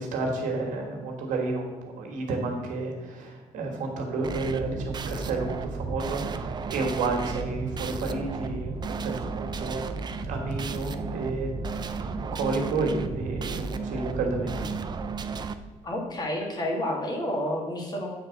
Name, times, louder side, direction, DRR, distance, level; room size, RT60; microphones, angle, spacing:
voice 1, 0.0-9.9 10.2-14.7, right 3 dB, 80° right, 1 dB, 1.7 m, -31 dB
sound 1, 4.2-15.5, right 4 dB, 35° right, 0.5 m, -33 dB
voice 2, 15.8-18.1, left 1 dB, 30° left, 0 dB, 1.9 m, -30 dB
8.3 x 4.0 x 5.8 m, 1.4 s
cardioid pair, 110°, 13 cm